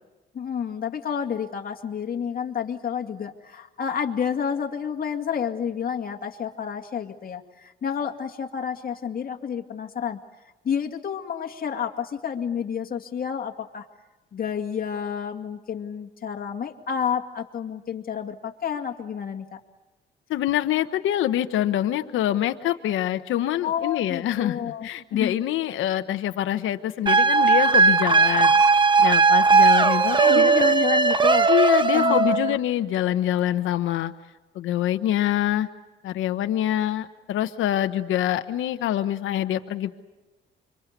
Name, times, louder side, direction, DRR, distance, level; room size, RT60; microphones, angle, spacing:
voice 1, 0.3-10.2 10.6-13.9 14.3-19.6 23.6-25.4 30.2-31.5 31.9-32.6, left 7 dB, 45° left, 3 dB, 2.3 m, -30 dB
voice 2, 20.3-28.6 29.0-30.5 31.5-34.1 34.5-35.7 36.0-39.9, left 12 dB, 85° left, 8 dB, 1.1 m, -25 dB
sound 1, 27.1-32.6, right 4 dB, 25° right, 1.1 m, -18 dB
26.0 x 24.0 x 8.2 m, 1.1 s
cardioid pair, 90°, 20 cm